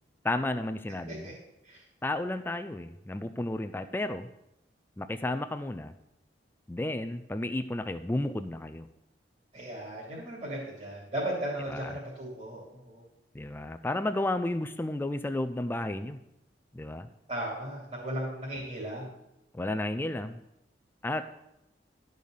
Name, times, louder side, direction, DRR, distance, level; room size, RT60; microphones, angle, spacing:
voice 1, 0.2-1.3 2.0-4.3 5.0-5.9 6.7-8.9 11.7-11.8 13.3-16.2 16.7-17.1 19.5-20.4 21.0-21.3, left 1 dB, 10° left, 9 dB, 0.4 m, -32 dB
voice 2, 9.5-13.0 17.3-19.1, right 1 dB, 40° right, -7 dB, 3.0 m, -36 dB
12.0 x 5.4 x 6.5 m, 0.85 s
head